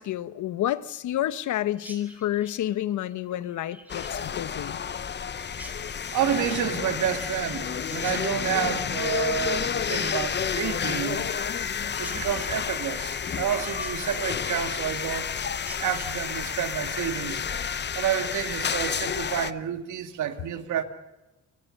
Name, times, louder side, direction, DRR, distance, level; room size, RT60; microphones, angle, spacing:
voice 1, 0.0-4.8, left 12 dB, 75° left, 15 dB, 1.1 m, -29 dB
Chirp tweet, 1.8-18.6, right 1 dB, 5° right, 5.4 m, -50 dB
sound 1, 3.9-19.5, left 7 dB, 35° left, 0.9 m, -30 dB
voice 2, 6.1-11.3 12.0-15.3 15.8-20.8, right 9 dB, 75° right, 8 dB, 2.3 m, -29 dB
28.5 x 20.5 x 6.6 m, 1.0 s
cardioid pair, 90°, 30 cm